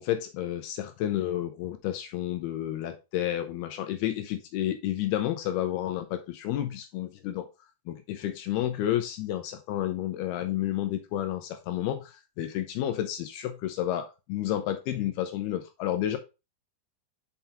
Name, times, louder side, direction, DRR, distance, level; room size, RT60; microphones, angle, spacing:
voice 1, 0.0-7.5 7.9-16.2, left 12 dB, 80° left, 7 dB, 2.4 m, -31 dB
5.9 x 5.5 x 3.4 m, 0.27 s
omnidirectional pair, 5.0 m